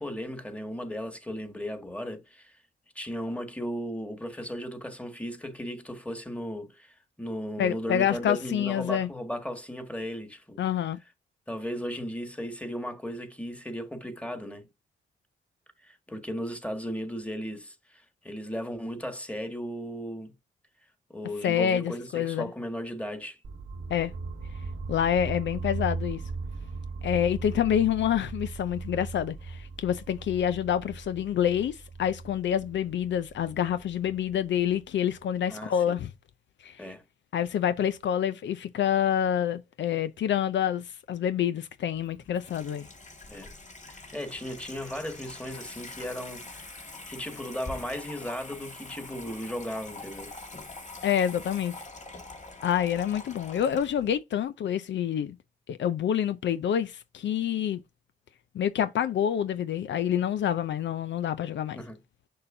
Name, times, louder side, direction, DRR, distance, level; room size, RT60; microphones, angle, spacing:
voice 1, 0.0-2.6 3.0-10.6 11.5-14.7 15.8-20.3 21.1-23.4 35.5-36.0 36.8-37.0 43.3-43.5 43.9-46.8 47.1-50.3 61.7-62.0, equal, 5° left, 1.7 m, -36 dB
voice 2, 7.6-9.1 10.6-11.0 21.4-22.5 23.9-24.1 24.9-26.2 27.0-36.1 36.6-36.8 37.3-42.9 51.0-51.7 52.6-55.4 55.7-57.8 58.5-61.8, left 9 dB, 70° left, 0.5 m, -27 dB
sound 1, 23.4-35.4, right 4 dB, 70° right, 1.1 m, -38 dB
Water tap faucet / Sink (filling or washing), 41.9-54.1, left 2 dB, 40° left, 1.9 m, -44 dB
6.7 x 5.5 x 2.7 m
cardioid pair, 65°, 19 cm